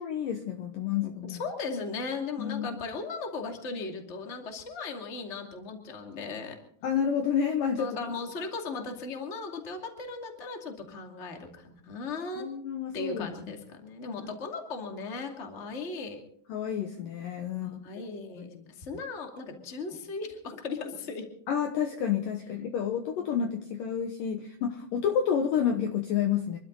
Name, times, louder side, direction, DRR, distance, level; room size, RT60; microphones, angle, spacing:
voice 1, 0.0-1.4 2.4-2.7 6.8-7.9 12.4-13.3 14.2-14.3 16.5-17.8 18.4-18.5 21.5-26.6, left 8 dB, 70° left, 5 dB, 2.3 m, -29 dB
voice 2, 1.2-6.6 7.8-12.5 12.9-16.2 17.6-21.3 23.2-23.3, left 4 dB, 25° left, 3 dB, 1.8 m, -37 dB
27.0 x 12.5 x 4.0 m, 0.65 s
omnidirectional pair, 5.0 m